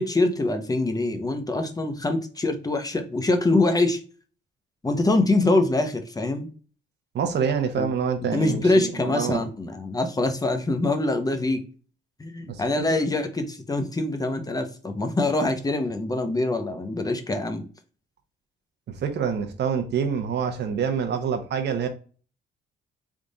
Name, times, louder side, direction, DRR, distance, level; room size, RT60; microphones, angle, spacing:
voice 1, 0.0-4.0 4.8-6.5 7.8-7.9 8.3-11.6 12.2-17.6, left 2 dB, 20° left, 0.8 m, -24 dB
voice 2, 7.1-9.4 12.5-12.6 18.9-21.9, right 7 dB, 60° right, 0.8 m, -26 dB
3.6 x 2.5 x 3.9 m
cardioid pair, 90°, 20 cm